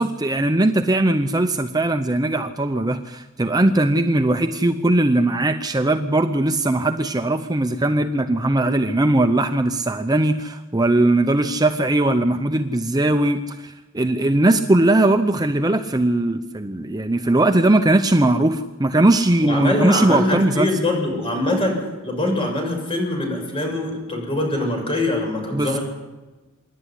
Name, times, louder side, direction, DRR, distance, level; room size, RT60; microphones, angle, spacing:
voice 1, 0.0-20.7 25.5-25.8, right 2 dB, 20° right, 7 dB, 0.7 m, -19 dB
voice 2, 19.4-21.8 22.0-25.8, left 1 dB, 25° left, 2 dB, 6.9 m, -23 dB
26.0 x 11.5 x 10.0 m, 1.2 s
head